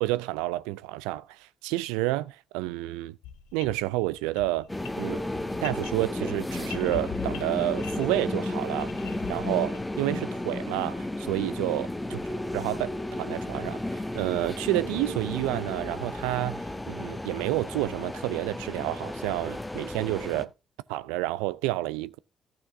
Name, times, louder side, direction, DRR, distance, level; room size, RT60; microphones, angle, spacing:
voice 1, 0.0-3.2 3.5-4.7 5.0-5.2 5.6-8.9 9.3-12.2 12.5-20.5 20.9-22.2, right 18 dB, 75° right, 0.4 m, -30 dB
sound 1, 3.2-10.0, left 11 dB, 75° left, 0.8 m, -43 dB
sound 2, 4.7-20.4, left 1 dB, 10° left, 1.2 m, -33 dB
14.5 x 6.1 x 3.5 m
hypercardioid pair, 45°, 0 cm